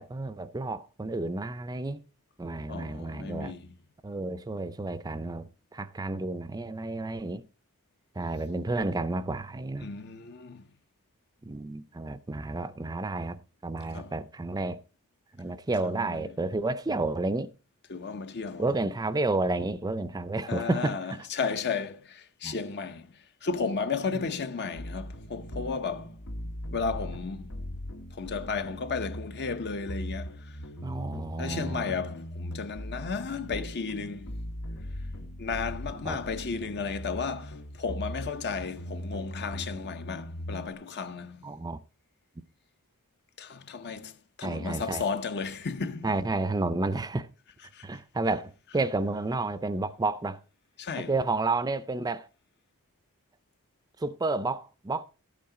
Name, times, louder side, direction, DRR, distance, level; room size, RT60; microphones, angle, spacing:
voice 1, 0.0-2.0 2.4-3.5 4.0-7.4 8.2-9.9 11.4-14.8 15.3-17.5 18.6-21.2 22.4-22.6 24.1-24.2 30.8-32.0 36.0-36.2 41.4-41.8 44.4-45.0 46.0-47.3 47.8-50.4 51.0-52.3 54.0-55.0, right 2 dB, 20° right, 0.5 m, -31 dB
voice 2, 2.7-3.7 9.8-10.7 13.9-14.1 15.9-16.2 17.9-18.7 20.5-23.1 23.4-26.1 26.7-27.5 28.2-30.3 31.4-34.3 35.4-41.5 43.4-46.1 47.7-47.8 50.8-51.1, left 5 dB, 50° left, 0.7 m, -34 dB
sound 1, 24.8-40.7, equal, 85° left, 1.3 m, -39 dB
12.5 x 8.5 x 3.7 m
head